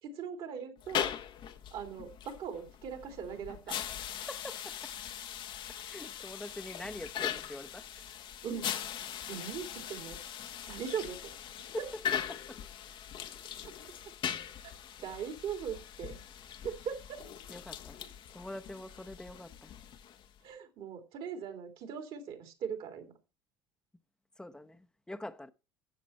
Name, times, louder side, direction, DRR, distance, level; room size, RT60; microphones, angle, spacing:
voice 1, 0.0-1.1 1.7-3.8 8.4-8.7 9.3-10.2 10.7-11.3 11.8-11.9 13.6-13.7 14.6-14.7 15.0-16.2 16.6-17.2 20.4-23.1, right 7 dB, 50° right, 2.7 m, -40 dB
sound 1, 0.8-20.4, left 9 dB, 45° left, 1.1 m, -40 dB
voice 2, 4.3-4.9 5.8-7.8 11.7-11.8 12.3-12.6 17.5-18.0 18.3-19.7 24.4-25.5, left 1 dB, 5° left, 1.0 m, -44 dB
12.5 x 7.3 x 4.3 m
figure-of-eight pair, 65°, 12 cm